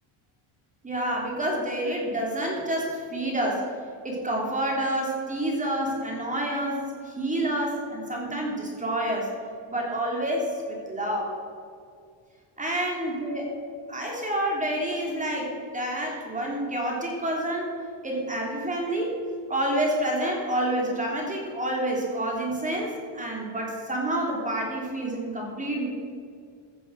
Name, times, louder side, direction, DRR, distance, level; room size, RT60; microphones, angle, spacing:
voice 1, 0.8-3.7 4.0-9.3 9.7-11.4 12.6-13.5 13.9-17.7 18.0-19.2 19.5-25.9, right 1 dB, 15° right, -1 dB, 3.1 m, -28 dB
15.5 x 6.8 x 6.3 m, 2.3 s
cardioid pair, 145°, 49 cm